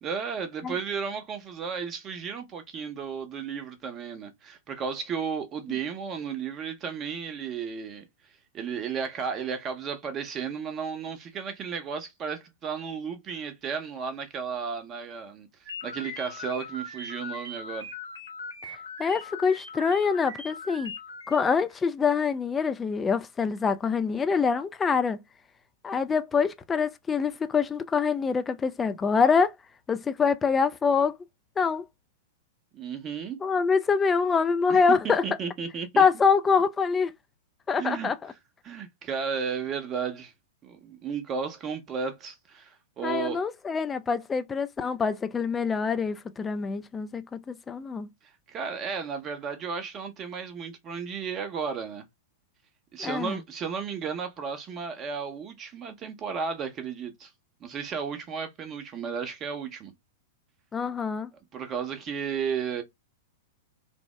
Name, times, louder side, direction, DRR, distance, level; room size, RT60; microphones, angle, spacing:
voice 1, 0.0-8.0 8.5-15.5 15.8-17.9 32.7-33.4 34.7-36.0 37.8-38.1 38.6-40.3 40.6-43.4 48.5-52.1 52.9-57.3 57.6-59.9 61.5-62.8, right 6 dB, 30° right, 0.8 m, -34 dB
sound 1, 15.6-21.4, left 3 dB, 80° left, 1.5 m, -40 dB
voice 2, 18.6-20.9 21.3-25.2 25.8-29.5 29.9-31.1 31.6-31.8 33.4-35.2 36.0-37.1 37.7-38.2 43.0-48.1 53.0-53.4 60.7-61.3, left 5 dB, 15° left, 0.4 m, -25 dB
3.4 x 2.0 x 3.1 m
figure-of-eight pair, 100°, 0 cm